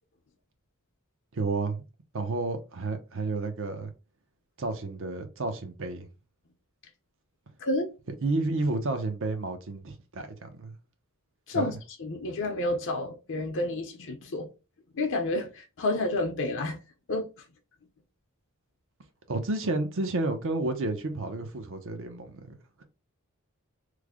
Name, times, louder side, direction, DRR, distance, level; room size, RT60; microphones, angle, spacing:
voice 1, 1.3-1.8 2.1-3.9 4.6-6.1 8.2-10.7 11.5-11.8 19.3-22.5, right 2 dB, 60° right, 0.7 m, -31 dB
voice 2, 11.5-14.5 14.9-16.8 17.1-17.3, left 2 dB, 60° left, 0.6 m, -30 dB
3.2 x 2.1 x 3.5 m
head